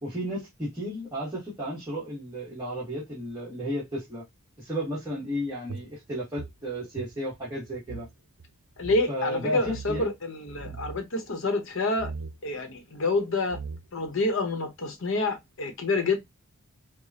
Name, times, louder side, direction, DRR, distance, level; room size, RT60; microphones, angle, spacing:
voice 1, 0.0-4.2 4.6-8.1 9.1-10.1 10.6-10.8, equal, 15° right, 1.4 m, -33 dB
sound 1, 5.7-8.1 8.4-8.5 8.8-9.1 9.6-10.1 10.5-11.0 12.0-12.4 13.1-13.2 13.5-14.1, right 5 dB, 70° right, 0.5 m, -39 dB
voice 2, 8.8-12.1 12.4-13.6 13.9-16.2, left 2 dB, 60° left, 0.9 m, -28 dB
4.9 x 2.2 x 2.8 m
head